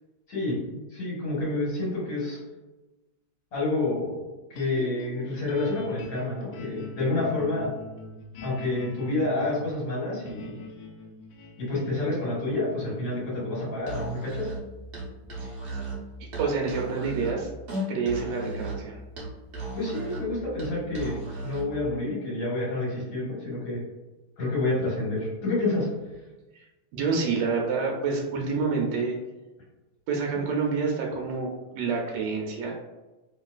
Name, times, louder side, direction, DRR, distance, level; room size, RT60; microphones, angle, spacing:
voice 1, 0.3-2.4 3.5-7.7 8.4-10.6 11.6-14.5 19.7-23.8 24.4-25.9 30.3-30.4, left 2 dB, 65° left, -7 dB, 1.9 m, -29 dB
sound 1, 4.5-16.8, left 3 dB, 85° left, 0.8 m, -45 dB
Musical instrument, 13.8-21.8, right 2 dB, 55° right, 0.6 m, -36 dB
voice 2, 16.2-17.5 17.9-19.0 26.6-26.7 26.9-29.1 30.1-32.7, right 4 dB, 75° right, 0 dB, 1.1 m, -28 dB
3.1 x 2.9 x 2.3 m, 1.1 s
omnidirectional pair, 2.2 m